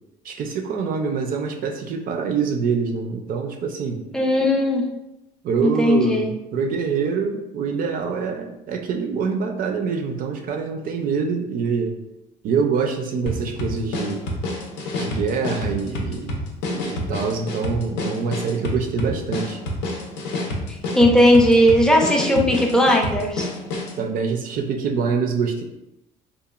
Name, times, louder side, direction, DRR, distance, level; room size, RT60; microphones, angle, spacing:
voice 1, 0.2-4.0 5.4-12.0 12.4-14.2 14.9-16.4 16.7-19.6 24.0-25.6, right 5 dB, 55° right, 4 dB, 0.4 m, -25 dB
voice 2, 4.1-4.8 5.6-6.3 20.9-23.5, equal, 5° left, 0 dB, 0.4 m, -17 dB
sound 1, 13.3-24.0, left 1 dB, 85° left, 0.6 m, -28 dB
2.8 x 2.2 x 2.3 m, 0.88 s
cardioid pair, 110°, 17 cm